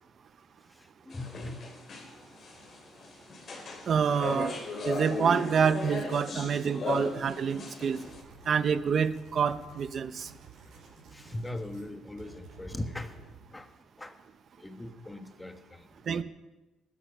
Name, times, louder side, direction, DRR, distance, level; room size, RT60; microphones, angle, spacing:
voice 1, 0.8-1.6 6.3-6.6 7.0-7.1 11.1-13.1 13.5-13.7 14.0-14.1 14.6-16.2, left 1 dB, 10° left, 8 dB, 1.3 m, -40 dB
sound 1, 1.1-8.2, left 3 dB, 40° left, 3.9 m, -37 dB
voice 2, 3.9-4.5 4.8-8.0 8.4-10.3 16.1-16.2, right 6 dB, 40° right, 12 dB, 0.9 m, -27 dB
sound 2, 7.8-11.9 12.2-13.5, right 5 dB, 65° right, 5.8 m, -52 dB
19.0 x 12.0 x 5.7 m, 1.1 s
cardioid pair, 140°, 0 cm